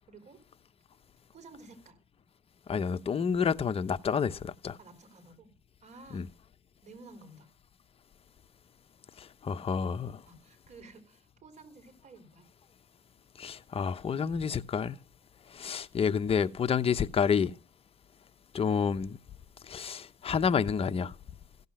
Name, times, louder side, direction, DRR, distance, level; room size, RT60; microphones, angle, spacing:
voice 1, 0.1-0.4 1.3-2.0 4.8-5.5 5.8-6.3 6.8-7.5 10.3-12.4, right 3 dB, 45° right, 4.3 m, -52 dB
voice 2, 2.7-4.8 6.1-6.2 9.2-10.2 13.4-15.0 15.5-17.5 18.5-19.2 19.7-21.1, left 6 dB, 35° left, 0.9 m, -29 dB
15.5 x 8.1 x 7.7 m
cardioid pair, 110°, 17 cm